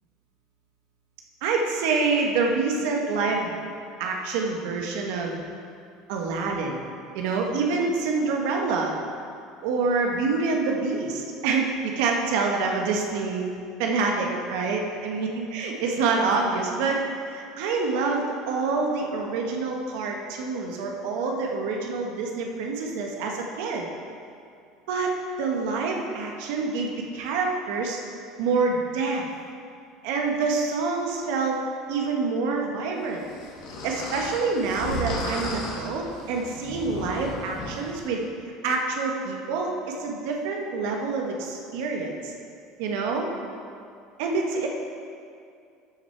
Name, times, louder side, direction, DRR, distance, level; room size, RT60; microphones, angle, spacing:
voice 1, 1.4-3.5 4.0-5.4 6.1-6.8 7.1-8.9 9.6-13.4 13.8-23.9 24.9-28.0 28.4-29.3 30.0-31.6 31.9-33.2 33.8-38.3 38.6-42.3 42.8-43.3 44.2-44.7, right 4 dB, 65° right, 1 dB, 1.3 m, -26 dB
sound 1, 33.3-37.9, left 1 dB, 55° left, 2.1 m, -34 dB
13.0 x 6.0 x 4.6 m, 2.4 s
cardioid pair, 180°, 0 cm